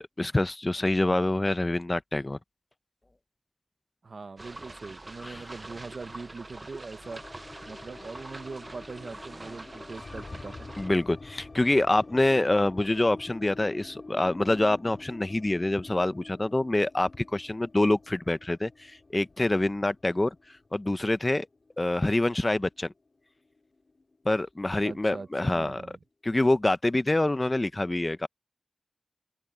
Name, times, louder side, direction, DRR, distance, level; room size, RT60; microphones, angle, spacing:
voice 1, 0.0-2.4 5.2-5.4 10.8-21.5 21.8-22.9 24.2-25.8 26.2-28.3, left 2 dB, 35° left, 0.7 m, -26 dB
voice 2, 4.0-7.2 7.7-10.7 24.8-26.0, right 4 dB, 90° right, 0.8 m, -42 dB
sound 1, 4.4-10.9, right 2 dB, 45° right, 0.6 m, -44 dB
sound 2, 7.0-23.1 23.4-23.5 23.8-24.5, left 3 dB, 65° left, 5.1 m, -48 dB
wide cardioid pair, 50°, 0 cm